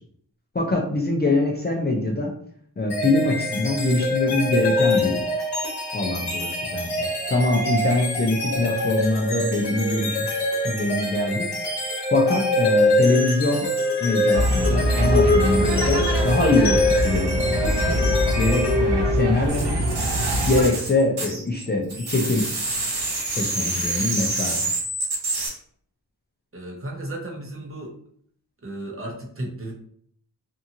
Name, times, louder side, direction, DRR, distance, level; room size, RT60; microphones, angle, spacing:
voice 1, 0.5-2.3 2.8-5.2 5.9-10.3 10.6-11.5 12.1-13.7 14.0-19.8 20.4-22.5 23.3-24.7, left 2 dB, 25° left, -1 dB, 0.4 m, -23 dB
sound 1, 2.9-19.6, left 1 dB, 70° left, 1.0 m, -24 dB
sound 2, 14.3-20.7, right 1 dB, 80° right, 0.6 m, -23 dB
sound 3, 19.5-21.6 21.9-25.5, right 2 dB, 65° right, 1.3 m, -27 dB
voice 2, 26.5-28.0 28.6-29.7, right 1 dB, 30° right, -1 dB, 0.8 m, -34 dB
2.7 x 2.4 x 2.7 m, 0.62 s
wide cardioid pair, 80°, 42 cm